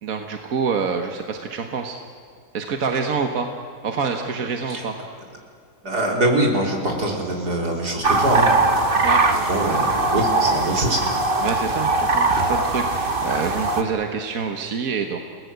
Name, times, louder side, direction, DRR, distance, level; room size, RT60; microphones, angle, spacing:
voice 1, 0.0-2.0 2.5-3.5 3.8-4.9 9.0-9.2 11.4-15.2, right 5 dB, 60° right, 4 dB, 1.6 m, -26 dB
voice 2, 5.8-8.5 9.5-11.0, right 1 dB, 75° right, 0 dB, 4.4 m, -23 dB
sound 1, 8.0-13.8, right 3 dB, 35° right, 1.7 m, -20 dB
29.0 x 18.5 x 8.0 m, 2.4 s
omnidirectional pair, 1.7 m